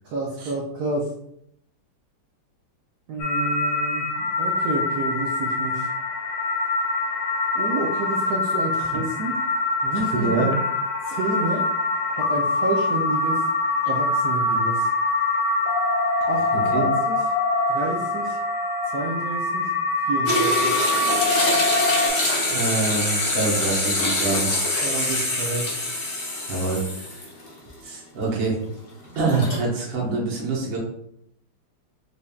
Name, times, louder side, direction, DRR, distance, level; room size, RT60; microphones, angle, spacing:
voice 1, 0.1-1.1 3.1-5.9 7.5-9.3 9.8-10.5 11.0-11.7 12.1-13.4 13.9-14.9 16.3-17.2 17.7-18.4 18.9-19.7 20.1-20.7 24.8-25.7, right 3 dB, 85° right, -2 dB, 0.8 m, -29 dB
sound 1, 3.2-22.1, left 3 dB, 80° left, 1.4 m, -24 dB
voice 2, 10.1-10.5 16.5-16.9 22.5-24.5 26.5-27.2 27.8-28.6 29.1-30.8, right 3 dB, 45° right, -3 dB, 0.7 m, -25 dB
sound 2, 20.3-27.5 27.9-28.0 29.2-29.6, left 1 dB, 50° left, 0.9 m, -25 dB
4.0 x 3.3 x 2.3 m, 0.73 s
omnidirectional pair, 2.4 m